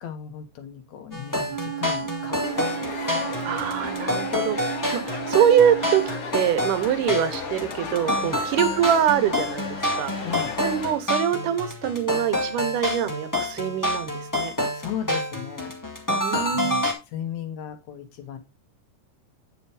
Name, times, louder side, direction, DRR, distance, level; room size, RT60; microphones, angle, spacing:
voice 1, 0.0-3.4 8.2-8.4 10.2-10.6 14.7-15.7 16.5-18.4, left 8 dB, 70° left, 8 dB, 2.4 m, -36 dB
sound 1, 1.1-16.9, left 1 dB, 10° left, 1.4 m, -28 dB
Wind instrument woodwind instrument, 1.5-6.3, right 12 dB, 65° right, 2.2 m, -34 dB
sound 2, 2.4-10.9, left 5 dB, 55° left, 2.1 m, -35 dB
voice 2, 3.4-10.3 10.6-14.5 16.1-16.9, right 9 dB, 85° right, 11 dB, 2.6 m, -24 dB
9.2 x 7.1 x 3.4 m, 0.24 s
omnidirectional pair, 3.6 m